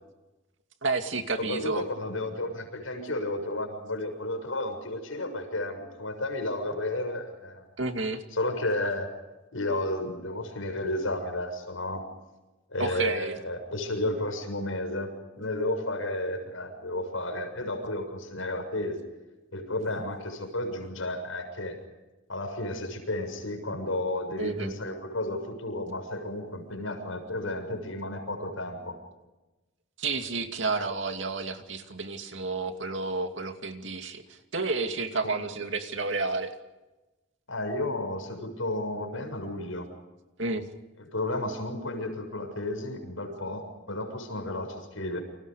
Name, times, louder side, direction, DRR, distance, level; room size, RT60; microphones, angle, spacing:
voice 1, 0.8-1.8 7.8-8.2 12.8-13.4 24.4-24.8 30.0-36.5 40.4-40.7, right 3 dB, 65° right, 5 dB, 2.6 m, -31 dB
voice 2, 1.4-7.7 8.3-9.1 9.5-12.0 12.7-19.0 19.5-21.8 22.3-29.0 35.2-35.3 37.5-39.9 41.1-45.2, left 1 dB, 80° left, 5 dB, 6.9 m, -32 dB
30.0 x 26.5 x 5.0 m, 1.1 s
head